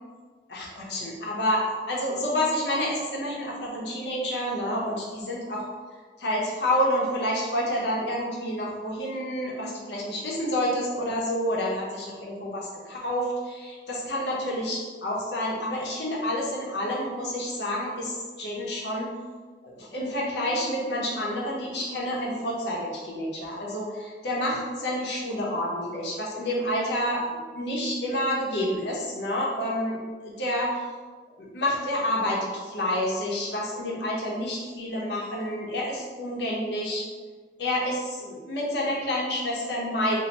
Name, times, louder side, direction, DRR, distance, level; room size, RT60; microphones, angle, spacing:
voice 1, 0.5-5.7 6.2-19.1 19.6-30.0 30.2-30.8 31.4-37.0 37.6-40.2, left 1 dB, 75° left, -3 dB, 0.9 m, -29 dB
3.0 x 2.7 x 4.0 m, 1.4 s
head